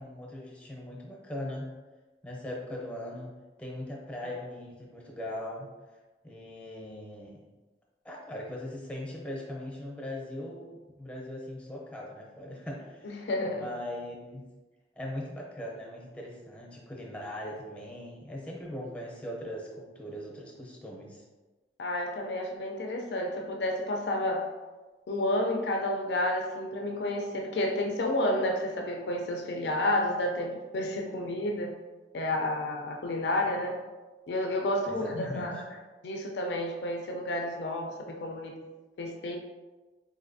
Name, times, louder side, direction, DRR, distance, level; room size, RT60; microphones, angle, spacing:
voice 1, 0.0-1.7 2.2-3.3 3.6-5.7 6.2-7.4 8.0-13.1 13.5-14.5 15.0-21.2 34.9-35.5, left 1 dB, 5° left, -2 dB, 0.6 m, -40 dB
voice 2, 13.0-13.7 21.8-24.5 25.1-31.7 32.1-33.8 34.3-38.5 39.0-39.4, left 1 dB, 70° left, 2 dB, 0.4 m, -30 dB
4.1 x 2.6 x 2.6 m, 1.2 s
head